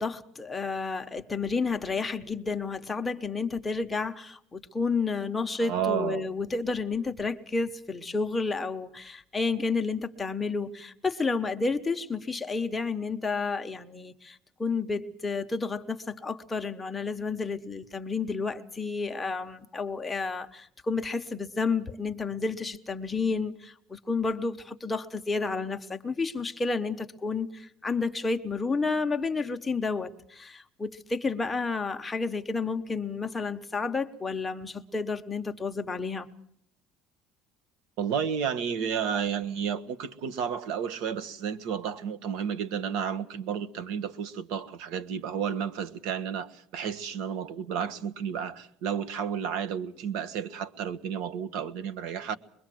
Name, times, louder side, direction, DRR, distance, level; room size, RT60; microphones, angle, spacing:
voice 1, 0.0-36.3, left 4 dB, 10° left, 1.0 m, -31 dB
voice 2, 5.6-6.3 38.0-52.4, right 7 dB, 70° right, 1.4 m, -32 dB
25.0 x 22.0 x 7.7 m
cardioid pair, 170°, 0 cm